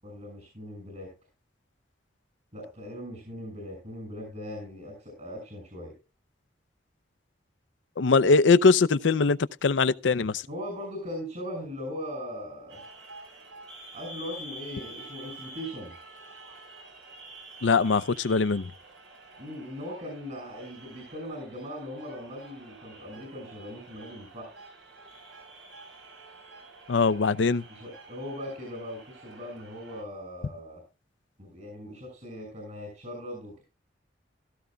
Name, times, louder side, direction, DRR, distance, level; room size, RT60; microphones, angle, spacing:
voice 1, 0.0-1.1 2.5-5.9 10.5-12.8 13.9-15.9 19.4-24.5 27.7-30.8 31.4-33.6, left 1 dB, 45° right, 6.2 m, -39 dB
voice 2, 8.0-10.4 17.6-18.7 26.9-27.6, left 4 dB, 75° left, 0.6 m, -22 dB
sound 1, 12.7-30.0, right 2 dB, 85° right, 5.8 m, -48 dB
16.5 x 14.5 x 2.3 m
head